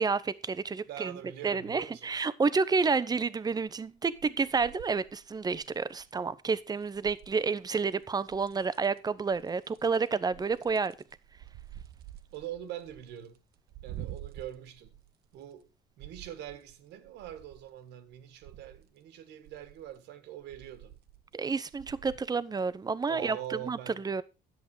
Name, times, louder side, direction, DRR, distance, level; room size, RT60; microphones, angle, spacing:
voice 1, 0.0-1.2 1.4-10.9 21.3-24.2, right 4 dB, 25° right, 0.8 m, -30 dB
voice 2, 0.9-2.1 12.3-13.4 13.8-15.0 15.3-15.7 16.0-21.0 23.1-24.0, right 11 dB, 85° right, 1.7 m, -43 dB
sound 1, 3.5-3.9 4.1-6.1 6.8-7.6 7.9-9.0 9.3-15.6 16.0-17.7 18.1-18.9 19.5-20.0 20.4-21.4 21.7-22.3 22.7-22.8, right 12 dB, 70° right, 1.0 m, -49 dB
10.5 x 7.9 x 4.8 m
cardioid pair, 110°, 17 cm